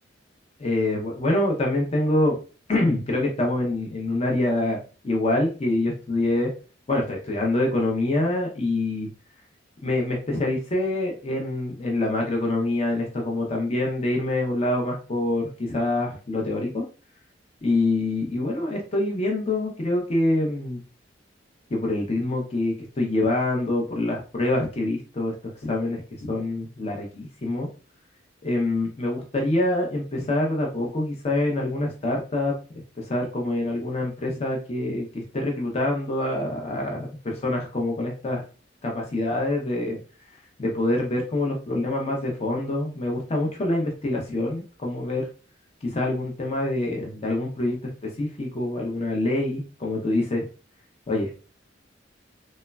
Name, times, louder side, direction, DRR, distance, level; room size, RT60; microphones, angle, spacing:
voice 1, 0.6-2.4 2.7-6.5 6.9-9.1 9.8-16.8 17.6-20.8 21.7-25.3 25.6-26.0 26.3-27.7 28.4-32.5 33.0-38.4 38.8-40.0 40.6-45.3 45.8-47.8 48.0-50.4 51.1-51.3, left 2 dB, 35° left, 0 dB, 0.5 m, -25 dB
3.1 x 2.0 x 2.2 m, 0.36 s
head